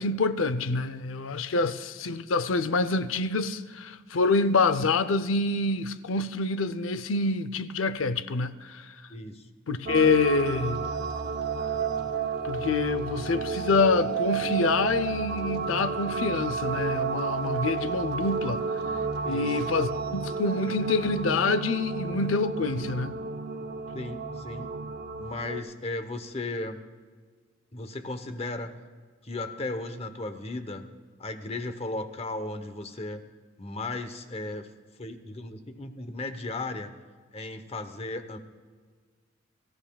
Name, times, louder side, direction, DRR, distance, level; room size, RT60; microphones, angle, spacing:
voice 1, 0.0-8.9 9.7-10.9 12.4-18.6 19.2-23.2, left 3 dB, 85° left, 0.6 m, -26 dB
voice 2, 9.1-9.4 19.2-19.5 23.9-24.8 25.2-26.8 27.7-28.7 29.2-30.8 31.2-33.2 33.6-34.7 35.0-36.9 37.3-38.4, left 2 dB, 30° left, 0.9 m, -35 dB
sound 1, 9.9-25.6, right 5 dB, 55° right, 0.8 m, -31 dB
23.0 x 14.0 x 2.3 m
head